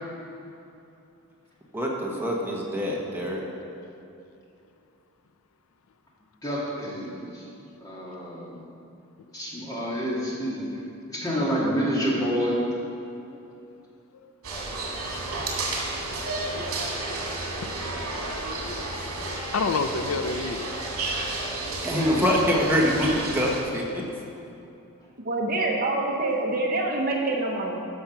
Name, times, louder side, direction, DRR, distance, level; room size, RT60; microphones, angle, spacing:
voice 1, 1.7-3.4 21.8-24.0, equal, 10° right, -3 dB, 1.2 m, -24 dB
voice 2, 6.4-7.5 7.8-8.7 9.3-10.8 11.1-12.6, equal, 15° left, -6 dB, 2.3 m, -28 dB
sound 1, 14.4-23.6, right 2 dB, 80° right, 2.3 m, -32 dB
voice 3, 17.5-20.9, left 4 dB, 70° left, 8 dB, 0.5 m, -32 dB
voice 4, 25.2-27.8, right 2 dB, 40° right, -1 dB, 1.2 m, -26 dB
14.0 x 5.5 x 5.9 m, 2.8 s
head